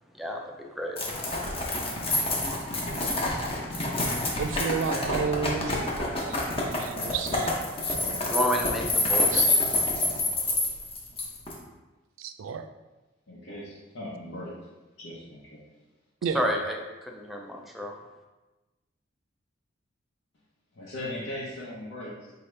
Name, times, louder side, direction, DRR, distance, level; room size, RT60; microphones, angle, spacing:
voice 1, 0.1-1.0 8.3-9.7 16.3-18.0, equal, ahead, 0 dB, 0.4 m, -31 dB
sound 1, 1.0-11.5, left 2 dB, 30° left, 0.7 m, -27 dB
voice 2, 4.4-7.5 7.8-8.0 9.2-9.6 12.2-12.7 16.2-16.6, right 6 dB, 80° right, 9 dB, 0.3 m, -32 dB
voice 3, 13.3-14.5 15.0-15.6 20.7-22.3, left 1 dB, 70° left, -7 dB, 0.8 m, -38 dB
4.7 x 2.8 x 3.2 m, 1.1 s
head